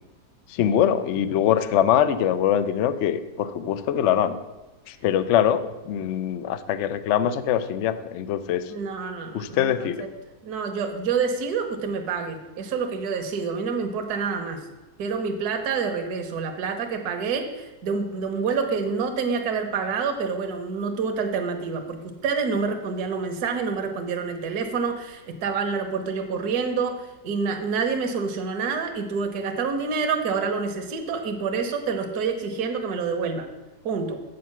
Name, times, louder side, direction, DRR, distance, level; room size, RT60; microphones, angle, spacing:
voice 1, 0.5-4.4 4.9-8.6 9.3-10.0, left 10 dB, 80° left, 12 dB, 0.6 m, -23 dB
voice 2, 8.7-10.1 10.4-14.6 15.0-33.5 33.8-34.2, right 5 dB, 65° right, 5 dB, 1.4 m, -27 dB
7.9 x 6.5 x 6.0 m, 1.1 s
omnidirectional pair, 1.9 m